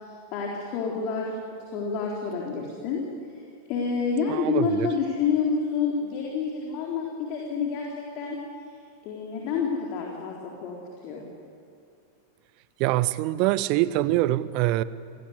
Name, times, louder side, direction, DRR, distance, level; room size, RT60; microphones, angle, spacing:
voice 1, 0.3-1.3 1.7-3.0 3.7-8.4 9.0-11.2, left 5 dB, 40° left, -1 dB, 3.9 m, -28 dB
voice 2, 4.3-4.9 12.8-14.8, right 16 dB, 45° right, 18 dB, 0.8 m, -24 dB
28.5 x 19.0 x 8.2 m, 2.4 s
figure-of-eight pair, 90°, 0 cm